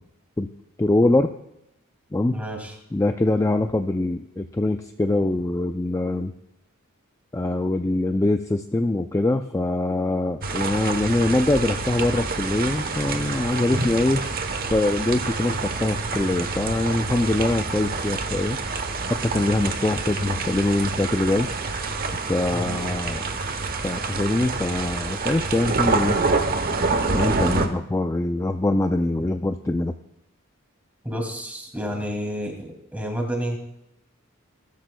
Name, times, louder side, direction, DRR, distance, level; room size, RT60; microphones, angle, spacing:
voice 1, 0.8-1.3 2.1-2.3 2.9-6.3 7.3-14.2 14.7-18.6 19.1-21.5 22.3-23.3 23.8-26.2 27.1-29.9, left 2 dB, 15° left, 7 dB, 0.3 m, -23 dB
voice 2, 2.3-2.8 22.5-22.9 31.0-33.6, equal, 5° right, 1 dB, 2.4 m, -30 dB
sound 1, 10.4-27.7, right 3 dB, 45° right, 0.9 m, -27 dB
20.5 x 12.5 x 2.2 m, 0.85 s
head